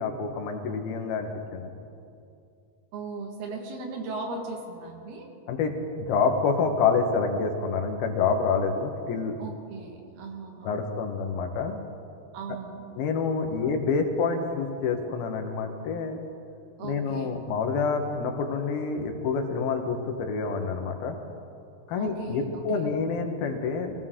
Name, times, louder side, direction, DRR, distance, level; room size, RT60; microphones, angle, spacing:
voice 1, 0.0-1.9 5.5-9.4 10.6-11.8 13.0-16.2 16.8-21.2 21.9-23.9, left 5 dB, 80° left, 4 dB, 3.2 m, -27 dB
voice 2, 2.9-5.3 9.4-10.8 12.3-12.9 13.6-13.7 16.8-17.4 22.0-22.9, right 3 dB, 90° right, 2 dB, 3.7 m, -38 dB
23.0 x 16.0 x 3.8 m, 2.5 s
omnidirectional pair, 4.3 m